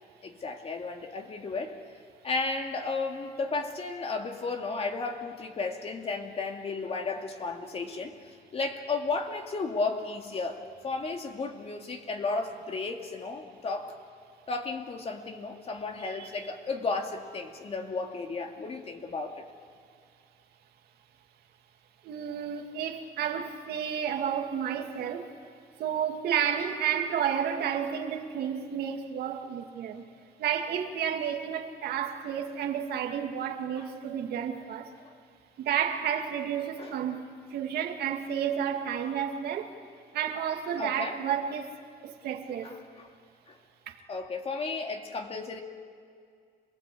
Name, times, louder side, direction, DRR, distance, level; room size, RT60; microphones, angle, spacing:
voice 1, 0.2-1.8 2.2-14.0 14.5-19.4 35.0-35.1 36.8-37.2 40.8-41.2 42.6-43.1 43.5-43.6 44.1-45.6, left 3 dB, 35° left, 2.6 m, -34 dB
voice 2, 22.0-25.3 25.8-30.0 30.4-34.9 35.6-37.2 37.5-39.7 40.1-41.8 42.0-42.7 43.9-44.0, right 8 dB, 70° right, 2.4 m, -31 dB
27.0 x 19.5 x 8.6 m
cardioid pair, 110°, 17 cm